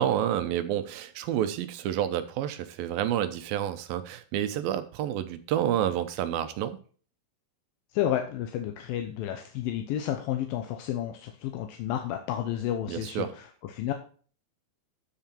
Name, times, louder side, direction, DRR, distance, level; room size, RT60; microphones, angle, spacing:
voice 1, 0.0-6.8 12.9-13.3, right 11 dB, 80° right, 11 dB, 2.5 m, -29 dB
voice 2, 7.9-13.9, left 11 dB, 80° left, 5 dB, 2.4 m, -31 dB
12.5 x 4.9 x 4.4 m, 0.42 s
omnidirectional pair, 4.3 m